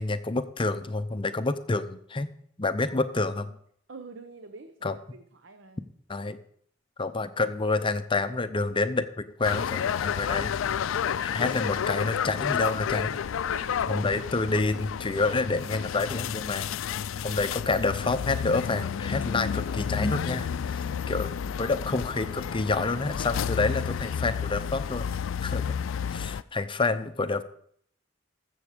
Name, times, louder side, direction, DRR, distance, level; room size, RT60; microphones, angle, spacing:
voice 1, 0.0-2.3 2.6-3.5 4.8-4.9 6.1-6.4 7.0-10.5 10.8-10.9 11.2-13.1 13.9-16.7 17.2-21.3 21.6-25.1 25.4-25.6 26.1-27.4, left 3 dB, 25° left, 11 dB, 0.6 m, -28 dB
voice 2, 3.9-5.9 13.5-14.2 20.8-21.8 25.6-26.4, right 3 dB, 70° right, 8 dB, 0.8 m, -48 dB
sound 1, 9.4-26.4, left 8 dB, 85° left, 0.4 m, -31 dB
14.5 x 7.0 x 5.0 m, 0.66 s
head